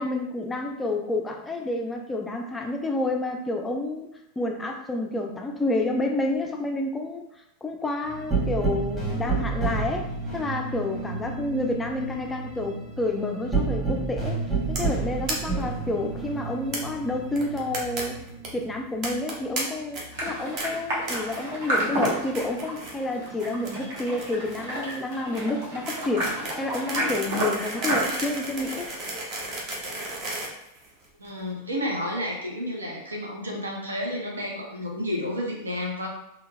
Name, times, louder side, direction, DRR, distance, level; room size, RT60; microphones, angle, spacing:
voice 1, 0.0-4.1 4.4-7.2 7.6-14.4 14.7-18.2 18.5-26.3 26.6-28.9, left 2 dB, 10° left, 2 dB, 0.4 m, -29 dB
sound 1, 8.0-21.0 21.3-23.2 23.5-25.2 25.7-27.5, right 4 dB, 15° right, 1.3 m, -32 dB
sound 2, 14.8-15.0 15.3-15.4 15.6-15.7 15.9-16.0 16.7-16.8 17.4-18.0 18.3-18.5 19.0-19.6 19.9-20.2 20.6-20.7 21.1-21.4 21.7-22.1 22.3-23.0 23.2-31.3, right 2 dB, 35° right, 0.7 m, -34 dB
sound 3, 20.1-28.0, right 1 dB, 55° right, 1.0 m, -31 dB
voice 2, 31.2-36.1, left 1 dB, 75° right, 0 dB, 0.6 m, -31 dB
3.8 x 2.2 x 2.2 m, 0.79 s
figure-of-eight pair, 90°, 0 cm